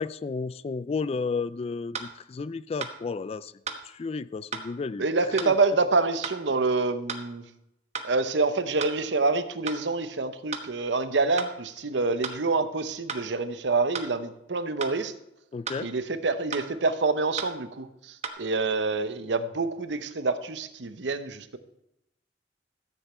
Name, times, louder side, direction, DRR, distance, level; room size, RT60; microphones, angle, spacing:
voice 1, 0.0-3.5 3.9-5.1 5.4-5.5 15.5-15.9, left 4 dB, 35° left, 0.3 m, -32 dB
sound 1, 1.9-2.1 2.8-3.0 3.7-3.8 4.5-4.7 5.4-5.5 6.2-6.4 7.1-7.3 7.9-8.1 8.8-9.0 9.7-9.8 10.5-10.7 11.4-11.5 12.2-12.4 13.1-13.3 13.9-14.1 14.8-15.0 15.7-15.8 16.5-16.7 17.4-17.5 18.2-18.3, right 5 dB, 40° right, 1.1 m, -34 dB
voice 2, 5.0-7.4 8.0-15.1 15.8-21.6, right 3 dB, 80° right, 0.8 m, -27 dB
13.5 x 8.1 x 4.3 m
head